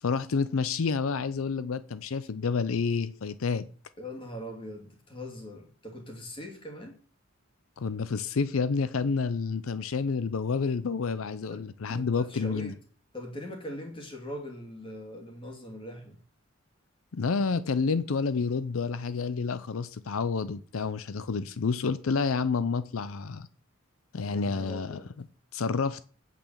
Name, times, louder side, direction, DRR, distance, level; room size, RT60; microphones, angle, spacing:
voice 1, 0.0-3.6 7.8-12.7 17.1-23.5 24.1-25.0 25.5-26.0, left 5 dB, 80° left, 0.6 m, -29 dB
voice 2, 4.0-7.0 11.5-11.6 11.9-12.8 13.1-16.2 24.2-25.1, equal, 25° left, 2.7 m, -41 dB
8.8 x 8.6 x 7.1 m
head